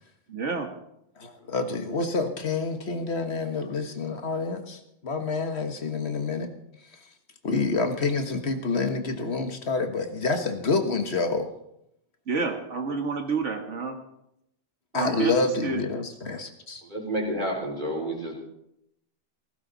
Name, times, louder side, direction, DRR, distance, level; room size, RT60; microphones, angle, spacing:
voice 1, 0.3-0.7 12.3-14.0 14.9-15.3 15.6-15.8, right 4 dB, 80° right, 4 dB, 1.9 m, -29 dB
voice 2, 1.2-6.5 7.4-11.5 14.9-16.8, left 3 dB, 65° left, 6 dB, 1.6 m, -28 dB
voice 3, 16.8-18.4, right 1 dB, 40° right, -1 dB, 3.8 m, -30 dB
17.0 x 15.0 x 4.1 m, 0.80 s
omnidirectional pair, 1.2 m